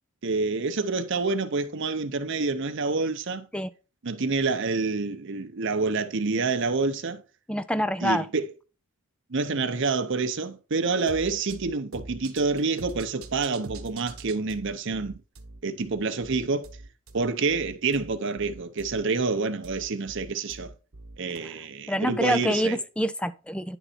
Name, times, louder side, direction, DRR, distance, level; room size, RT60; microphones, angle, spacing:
voice 1, 0.2-3.5 4.0-7.2 8.0-8.4 9.3-15.2 15.6-16.7 17.1-20.7 21.2-22.8, right 4 dB, 55° right, 0.7 m, -27 dB
voice 2, 7.5-8.3 21.9-23.8, equal, 5° left, 0.3 m, -26 dB
sound 1, 11.1-21.4, right 2 dB, 70° right, 1.1 m, -44 dB
10.0 x 4.0 x 4.2 m
head